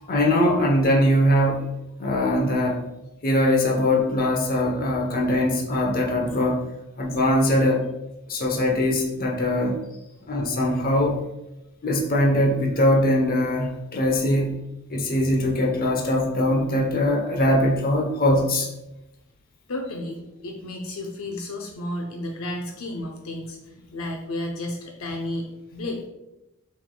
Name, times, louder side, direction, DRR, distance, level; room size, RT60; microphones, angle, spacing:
voice 1, 0.1-1.7 2.0-2.8 3.2-6.6 7.0-7.8 8.3-9.8 10.3-11.2 11.8-14.6 14.9-18.7, left 1 dB, 45° left, 0 dB, 0.9 m, -21 dB
voice 2, 19.7-26.1, left 1 dB, 75° left, 0 dB, 0.7 m, -32 dB
6.2 x 3.5 x 2.2 m, 0.93 s
head